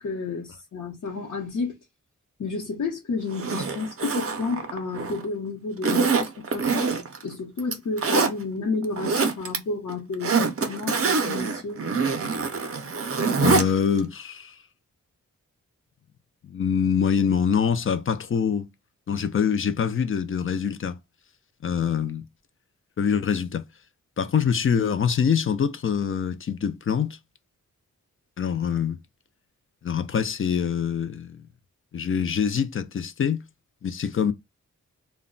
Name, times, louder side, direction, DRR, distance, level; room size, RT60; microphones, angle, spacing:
voice 1, 0.0-1.8 2.4-6.9 7.2-11.8, left 4 dB, 60° left, 0.8 m, -31 dB
Zipper (clothing), 3.3-5.2 5.8-7.2 7.6-8.3 8.8-9.6 9.9-13.7 14.0-14.1, right 4 dB, 45° right, 0.5 m, -25 dB
voice 2, 13.4-14.6 16.4-18.7 19.1-21.0 21.6-22.3 23.0-23.7 24.2-27.2 28.4-29.0 29.8-31.4 31.9-33.4 33.8-34.3, left 7 dB, 40° left, 0.4 m, -24 dB
2.2 x 2.1 x 3.7 m
wide cardioid pair, 115°, 31 cm